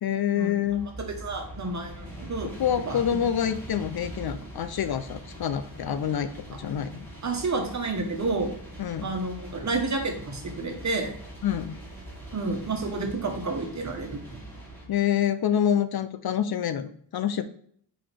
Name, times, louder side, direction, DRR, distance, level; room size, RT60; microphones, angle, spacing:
voice 1, 0.0-0.9 2.6-7.1 8.8-9.1 11.4-11.8 14.9-17.4, left 9 dB, 60° left, 12 dB, 0.5 m, -27 dB
sound 1, 0.6-14.9, right 1 dB, 5° left, 2.9 m, -42 dB
voice 2, 1.0-2.5 2.8-3.0 7.2-8.5 9.0-11.1 12.3-14.4, right 3 dB, 40° right, 3 dB, 1.3 m, -30 dB
8.5 x 3.9 x 3.4 m, 0.62 s
wide cardioid pair, 145°, 44 cm